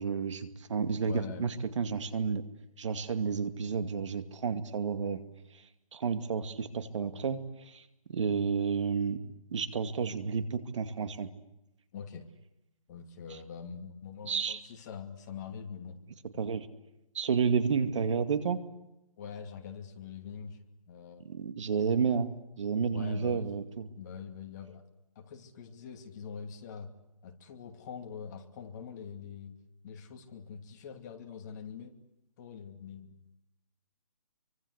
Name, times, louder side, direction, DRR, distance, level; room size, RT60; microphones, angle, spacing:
voice 1, 0.0-2.4 2.8-5.2 5.5-5.6 5.9-7.8 8.1-9.2 9.5-11.3 14.2-14.6 16.3-16.7 17.1-18.6 21.2-23.9, right 6 dB, 55° right, 10 dB, 2.3 m, -31 dB
voice 2, 1.0-1.5 11.9-12.3 12.9-16.0 16.3-16.4 19.2-20.6 20.9-21.3 22.9-23.5 24.0-24.8 25.2-26.9 27.2-29.5 29.8-31.9 32.4-33.2, left 6 dB, 30° left, 5 dB, 2.7 m, -44 dB
28.0 x 24.5 x 8.1 m, 0.86 s
hypercardioid pair, 160°, 19 cm